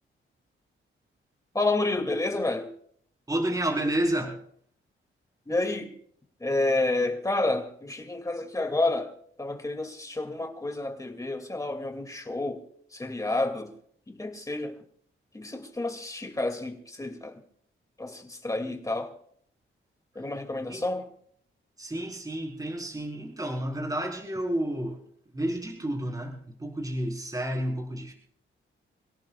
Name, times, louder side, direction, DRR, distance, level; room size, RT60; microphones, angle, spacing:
voice 1, 1.5-2.7 5.5-5.9 6.4-9.1 9.4-12.6 12.9-13.7 14.1-14.8 15.3-17.4 18.0-19.1 20.1-21.1, left 2 dB, 15° left, 2.3 m, -29 dB
voice 2, 3.3-4.4 20.7-20.9 21.8-25.0 25.3-28.1, right 1 dB, 15° right, 4.0 m, -30 dB
28.5 x 17.0 x 2.4 m
wide cardioid pair, 115°, 21 cm